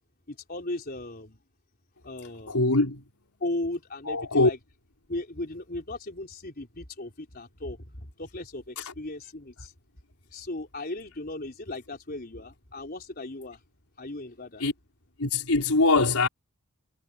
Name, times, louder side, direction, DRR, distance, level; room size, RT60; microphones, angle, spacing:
voice 1, 0.3-1.4 2.0-2.6 3.4-4.6 5.1-9.7 10.3-13.6 14.0-14.6, left 2 dB, 40° left, 3.9 m, -37 dB
voice 2, 2.5-3.0 4.1-4.5 8.8-8.9 14.6-14.7 15.2-16.3, left 3 dB, 85° left, 4.1 m, -22 dB
head